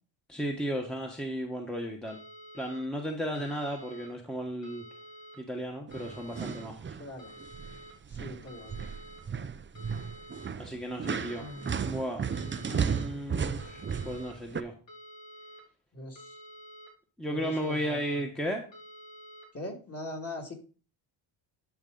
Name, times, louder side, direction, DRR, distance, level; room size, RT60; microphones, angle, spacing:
voice 1, 0.3-2.2 2.5-4.8 5.4-6.9 10.6-11.5 11.8-12.2 12.6-14.7 17.2-18.6, equal, ahead, 1 dB, 1.3 m, -34 dB
sound 1, 2.1-2.8 3.3-4.1 4.6-5.4 5.9-6.6 7.2-7.9 8.5-9.2 9.7-10.5 11.0-11.8 12.3-13.0 13.6-14.3 14.9-15.6 16.1-16.9 17.4-18.2 18.7-19.4, equal, 60° left, 3.5 m, -49 dB
sound 2, 5.9-7.1 7.4-7.8 8.1-14.6, right 6 dB, 25° right, 0.5 m, -34 dB
voice 2, 7.0-7.3 8.2-8.9 11.3-11.7 12.4-12.8 15.9-16.3 17.3-18.0 19.5-20.5, left 1 dB, 30° left, 1 dB, 2.6 m, -41 dB
12.0 x 4.8 x 3.9 m, 0.38 s
cardioid pair, 85°, 50 cm